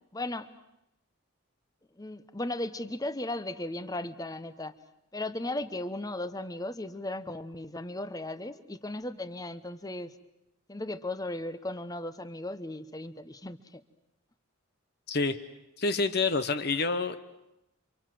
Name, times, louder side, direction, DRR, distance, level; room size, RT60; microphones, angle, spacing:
voice 1, 0.1-0.5 2.0-4.7 5.1-10.1 10.7-13.8, left 1 dB, 15° left, 12 dB, 1.0 m, -36 dB
voice 2, 15.8-17.2, left 4 dB, 50° left, 10 dB, 1.0 m, -27 dB
28.5 x 25.5 x 7.7 m, 0.87 s
head